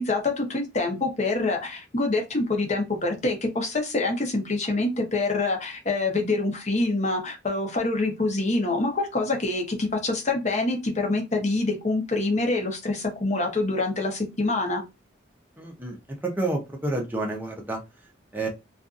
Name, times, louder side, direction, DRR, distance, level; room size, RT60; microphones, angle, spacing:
voice 1, 0.0-14.8, left 2 dB, 35° left, 2 dB, 0.8 m, -26 dB
voice 2, 15.6-16.0 16.2-17.8 18.3-18.5, right 2 dB, 10° right, 1 dB, 0.6 m, -29 dB
2.5 x 2.4 x 2.4 m, 0.24 s
head